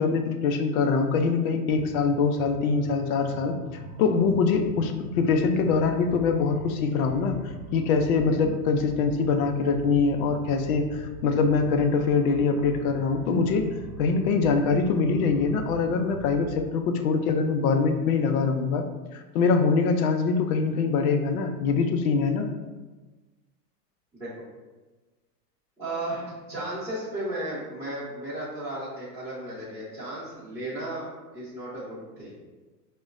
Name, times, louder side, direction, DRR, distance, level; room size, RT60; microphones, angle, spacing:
voice 1, 0.0-3.6 4.0-7.4 7.7-13.6 14.0-18.8 19.1-22.5, left 4 dB, 60° left, 6 dB, 0.6 m, -23 dB
sound 1, 1.7-16.7, right 2 dB, 60° right, 0.8 m, -42 dB
voice 2, 25.8-31.0 31.3-32.3, right 1 dB, 5° right, -11 dB, 0.8 m, -34 dB
5.0 x 2.1 x 2.4 m, 1.2 s
hypercardioid pair, 110°, 49 cm